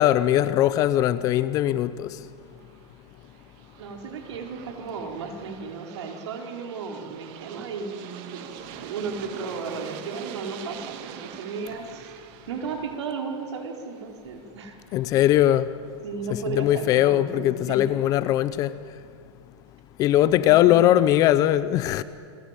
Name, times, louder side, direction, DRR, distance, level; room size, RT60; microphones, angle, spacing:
voice 1, 0.0-2.1 14.9-15.7 16.6-18.7 20.0-22.0, left 13 dB, 25° left, 0.6 m, -20 dB
Aircraft, 2.4-15.2, right 9 dB, 35° right, 1.7 m, -44 dB
voice 2, 3.8-8.4 8.8-12.1 12.5-14.8 16.0-17.9 20.4-20.9, right 5 dB, 70° right, 4.5 m, -34 dB
29.5 x 21.0 x 9.2 m
supercardioid pair, 160°, 15 cm